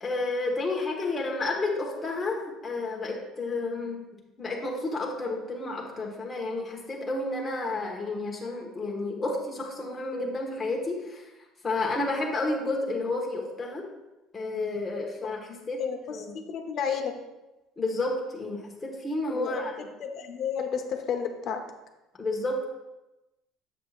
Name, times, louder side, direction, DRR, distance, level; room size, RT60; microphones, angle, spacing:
voice 1, 0.0-4.0 4.4-11.3 11.6-13.9 14.3-15.8 16.1-16.3 17.8-19.9 22.2-22.6, left 2 dB, 15° left, -1 dB, 1.2 m, -31 dB
voice 2, 15.8-17.1 19.3-19.6 20.0-21.6, left 7 dB, 45° left, 5 dB, 0.8 m, -31 dB
7.4 x 7.2 x 2.4 m, 1.0 s
cardioid pair, 145°, 0 cm